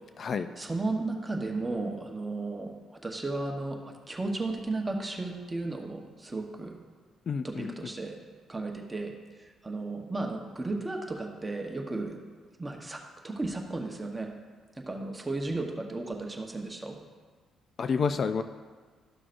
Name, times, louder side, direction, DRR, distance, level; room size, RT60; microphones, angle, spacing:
voice 1, 0.6-3.8 4.1-6.8 7.4-8.2 8.5-9.1 9.6-12.2 12.6-14.3 14.8-16.9, right 2 dB, 15° right, 2 dB, 1.0 m, -34 dB
voice 2, 7.3-7.7 17.8-18.4, left 5 dB, 50° left, 10 dB, 0.3 m, -29 dB
12.5 x 6.1 x 2.6 m, 1.5 s
cardioid pair, 90°, 0 cm